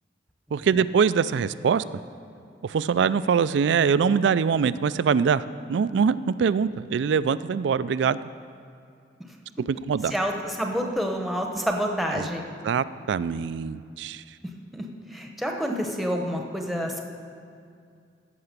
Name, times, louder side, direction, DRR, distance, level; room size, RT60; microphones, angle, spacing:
voice 1, 0.5-1.8 2.6-8.2 9.7-10.1 12.2-12.3 12.6-14.2, right 6 dB, 75° right, 16 dB, 0.3 m, -23 dB
voice 2, 10.1-12.5 14.7-14.8 15.1-17.0, equal, ahead, 2 dB, 0.9 m, -28 dB
15.5 x 5.8 x 6.7 m, 2.3 s
head